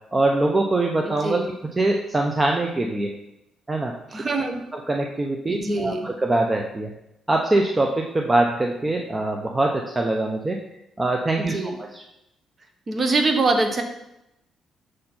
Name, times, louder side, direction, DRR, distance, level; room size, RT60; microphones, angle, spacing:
voice 1, 0.1-1.4 1.8-3.1 3.7-3.9 4.7-6.9 7.3-10.6 11.0-12.0, right 2 dB, 20° right, 2 dB, 0.6 m, -23 dB
voice 2, 1.1-1.5 4.1-4.6 5.5-6.1 11.4-11.7 12.9-13.8, right 3 dB, 35° right, 5 dB, 1.0 m, -24 dB
6.4 x 4.2 x 4.3 m, 0.85 s
cardioid pair, 90°, 0 cm